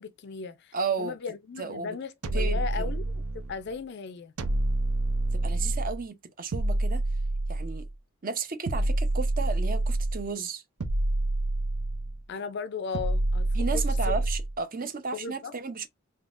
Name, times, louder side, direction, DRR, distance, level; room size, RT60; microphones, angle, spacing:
voice 1, 0.0-4.3 12.3-14.1 15.1-15.5, left 5 dB, 50° left, 0.4 m, -37 dB
voice 2, 0.7-1.1 1.6-2.0 2.3-2.9 5.3-7.0 7.5-7.9 8.2-10.6 13.5-15.9, right 4 dB, 40° right, 0.6 m, -33 dB
sound 1, 2.2-3.6 4.4-6.0 6.5-7.9 8.7-10.3 10.8-12.2 12.9-14.6, right 2 dB, 85° right, 0.6 m, -27 dB
3.6 x 2.8 x 2.4 m
head